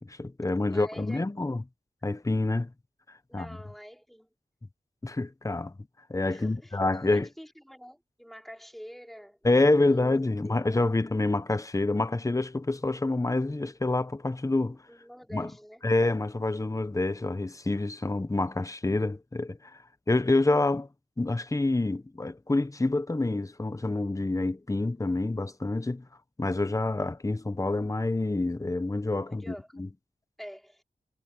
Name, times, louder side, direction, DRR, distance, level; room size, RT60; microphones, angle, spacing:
voice 1, 0.0-1.6 2.0-2.7 3.3-3.5 5.0-5.7 6.1-7.3 9.4-14.8 15.3-15.5 15.8-19.8 20.1-20.9 21.2-26.1 26.4-29.9, left 2 dB, 20° left, 0.9 m, -27 dB
voice 2, 0.7-1.6 3.3-4.3 6.3-10.1 10.5-10.8 14.9-15.8 29.2-29.7 30.4-30.8, equal, ahead, 5.2 m, -47 dB
wide cardioid pair, 85°, 15 cm